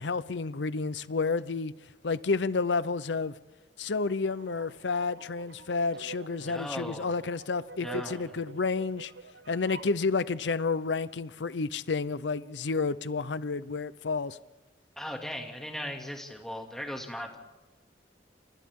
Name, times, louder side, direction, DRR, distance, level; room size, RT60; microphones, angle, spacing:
voice 1, 0.0-1.7 2.0-3.3 3.8-9.1 9.5-14.4, left 4 dB, 85° left, 0.7 m, -30 dB
sound 1, 4.3-10.0, right 4 dB, 70° right, 0.8 m, -47 dB
voice 2, 6.4-7.1 7.8-8.2 15.0-17.4, equal, 5° left, 2.5 m, -38 dB
29.0 x 27.5 x 3.7 m
head